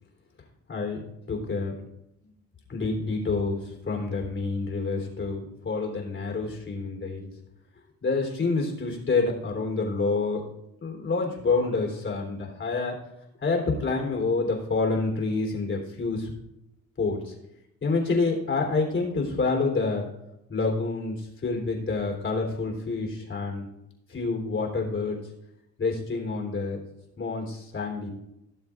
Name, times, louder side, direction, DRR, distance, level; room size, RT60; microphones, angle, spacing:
voice 1, 1.3-1.7 2.7-7.3 8.0-10.4 10.8-13.0 13.4-16.3 17.0-17.4 17.8-20.1 20.5-23.6 24.1-25.3 25.8-26.8 27.2-28.1, left 3 dB, 40° left, 1 dB, 3.4 m, -28 dB
17.0 x 7.1 x 2.5 m, 0.84 s
cardioid pair, 90°, 30 cm